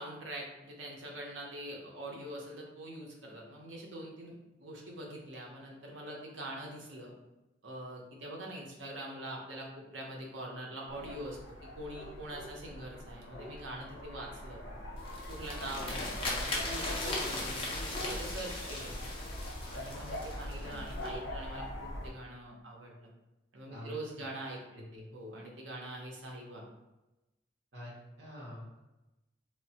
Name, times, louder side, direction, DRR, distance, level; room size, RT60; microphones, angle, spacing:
voice 1, 0.0-4.3 4.6-7.1 7.6-14.6 15.3-19.0 19.7-23.1 23.5-24.6 24.9-26.7, right 1 dB, 85° right, -1 dB, 0.7 m, -44 dB
sound 1, 10.9-22.1, left 1 dB, 70° left, 0.6 m, -42 dB
sound 2, 15.0-21.1, left 2 dB, 30° left, 0.5 m, -39 dB
voice 2, 23.7-24.0 24.7-25.1 27.7-28.8, left 1 dB, 65° right, -7 dB, 0.9 m, -46 dB
3.0 x 2.0 x 2.7 m, 1.0 s
head